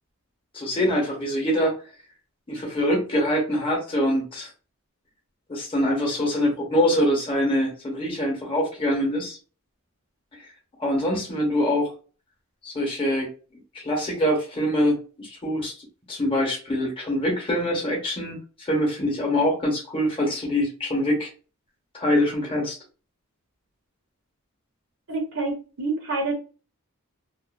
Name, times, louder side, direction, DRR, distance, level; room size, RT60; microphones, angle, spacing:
voice 1, 0.5-1.7 2.5-4.5 5.5-9.4 10.3-10.4 10.8-11.9 12.6-13.3 13.7-15.7 16.1-21.3 21.9-22.8, equal, 25° left, -1 dB, 0.9 m, -24 dB
voice 2, 25.1-26.3, right 3 dB, 60° right, 1 dB, 0.6 m, -27 dB
2.5 x 2.4 x 2.3 m, 0.36 s
head